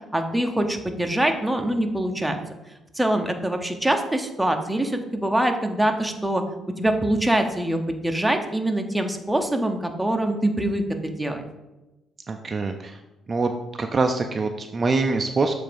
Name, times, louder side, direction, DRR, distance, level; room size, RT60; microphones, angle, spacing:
voice 1, 0.1-2.4 2.9-6.4 6.8-11.4, right 1 dB, 5° right, 4 dB, 0.8 m, -24 dB
voice 2, 12.3-13.0 13.3-13.5 13.8-15.5, right 3 dB, 35° right, 5 dB, 0.5 m, -24 dB
7.3 x 3.4 x 5.1 m, 1.0 s
cardioid pair, 90°, 0 cm